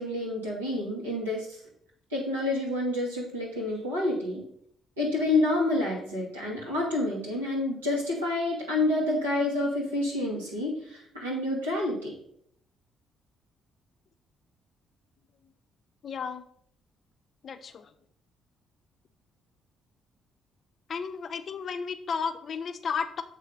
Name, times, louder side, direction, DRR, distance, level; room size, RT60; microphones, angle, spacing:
voice 1, 0.0-1.6 2.1-4.4 5.0-12.1, left 2 dB, 85° right, -5 dB, 2.2 m, -28 dB
voice 2, 16.0-16.4 17.4-17.9 20.9-23.2, left 6 dB, 50° left, 10 dB, 0.6 m, -33 dB
7.5 x 3.4 x 5.3 m, 0.66 s
figure-of-eight pair, 45°, 0 cm